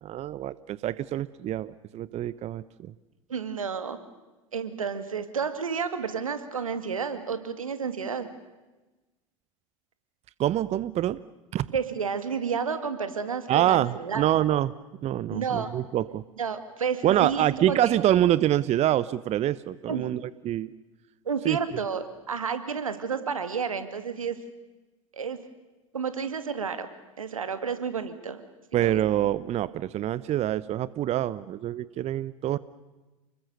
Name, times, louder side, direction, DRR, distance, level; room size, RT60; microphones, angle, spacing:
voice 1, 0.0-2.6 10.4-11.2 11.5-11.7 13.5-14.7 15.0-16.2 17.0-20.7 21.4-21.6 28.7-32.6, right 12 dB, 40° right, 18 dB, 0.8 m, -25 dB
voice 2, 3.3-4.0 4.5-8.3 11.7-14.3 15.3-15.7 16.4-18.0 19.9-20.1 21.3-24.4 25.1-25.4 25.9-26.9 27.2-28.4 28.7-29.0, right 6 dB, 85° right, 10 dB, 2.3 m, -31 dB
30.0 x 21.5 x 6.7 m, 1.1 s
hypercardioid pair, 80°, 17 cm